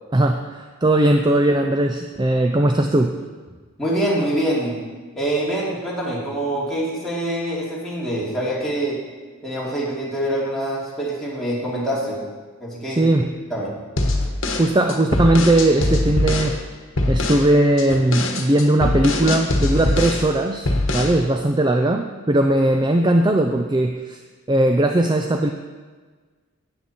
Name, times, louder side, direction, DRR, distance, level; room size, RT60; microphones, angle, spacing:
voice 1, 0.1-3.2 12.9-13.3 14.6-16.6 17.1-24.2 24.5-25.5, right 1 dB, 20° right, 4 dB, 0.4 m, -18 dB
voice 2, 3.8-4.8 5.2-9.0 9.4-12.2 12.6-13.1 13.5-13.8, right 1 dB, ahead, -7 dB, 2.5 m, -25 dB
sound 1, 14.0-16.5 17.0-17.5 17.8-20.3 20.6-21.2, left 2 dB, 55° left, 1.3 m, -22 dB
12.5 x 8.8 x 4.2 m, 1.4 s
head